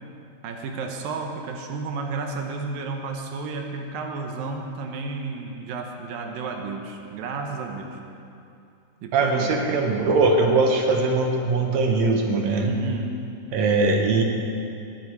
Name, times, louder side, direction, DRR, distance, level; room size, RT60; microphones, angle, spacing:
voice 1, 0.4-8.0 9.0-9.6 12.6-13.2, right 4 dB, 85° right, 3 dB, 2.7 m, -32 dB
voice 2, 9.1-12.7 13.5-14.2, right 3 dB, 65° right, 2 dB, 2.1 m, -21 dB
19.5 x 9.4 x 4.6 m, 2.6 s
omnidirectional pair, 4.0 m